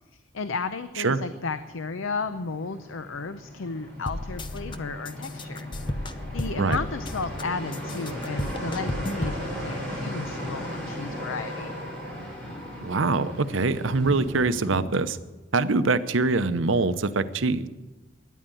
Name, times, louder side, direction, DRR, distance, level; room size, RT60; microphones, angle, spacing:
voice 1, 0.3-5.7 6.3-11.8, left 4 dB, 90° left, 11 dB, 0.7 m, -33 dB
sound 1, 1.6-14.8, equal, 10° left, 5.3 m, -37 dB
sound 2, 4.1-4.8 5.0-7.4 7.7-9.4, left 1 dB, 25° left, 0.7 m, -33 dB
voice 2, 12.8-15.2 15.5-17.7, right 3 dB, 80° right, 12 dB, 0.8 m, -24 dB
13.0 x 10.0 x 9.0 m, 1.1 s
head